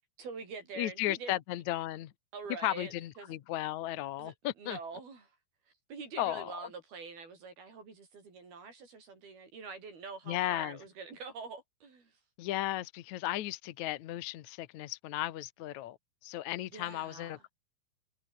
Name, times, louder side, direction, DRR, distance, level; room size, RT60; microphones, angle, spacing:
voice 1, 0.2-1.4 2.3-3.4 4.2-5.3 5.9-12.1 16.7-17.4, right 5 dB, 90° right, 8.4 m, -45 dB
voice 2, 0.8-2.1 2.6-4.8 6.2-6.5 10.3-10.8 12.4-16.0 16.2-17.5, left 14 dB, 65° left, 2.2 m, -35 dB
omnidirectional pair, 4.2 m